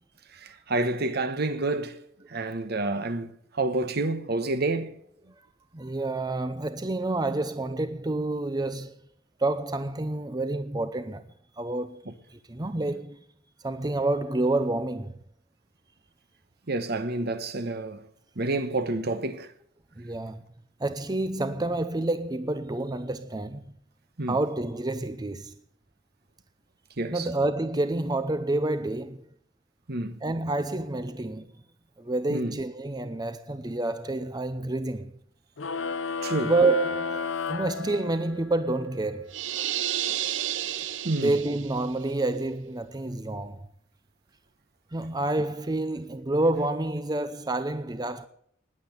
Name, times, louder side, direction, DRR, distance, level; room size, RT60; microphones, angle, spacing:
voice 1, 0.4-2.0 2.3-5.0 16.7-18.0 18.4-19.5 24.2-24.4 27.0-27.3 29.9-30.2 32.3-32.5 36.2-36.5 41.0-41.3, right 2 dB, 60° right, 1.2 m, -28 dB
voice 2, 5.7-8.9 9.4-11.2 11.6-12.0 12.3-13.2 13.6-15.2 20.0-20.4 20.8-23.6 24.3-25.6 27.1-29.2 30.2-31.5 32.0-35.1 36.4-39.7 40.8-43.7 44.9-48.3, right 2 dB, 20° right, 0.7 m, -28 dB
sound 1, 35.6-38.5, left 5 dB, 90° left, 0.8 m, -32 dB
sound 2, 39.3-41.9, right 12 dB, 85° right, 0.7 m, -31 dB
20.0 x 8.1 x 8.5 m
head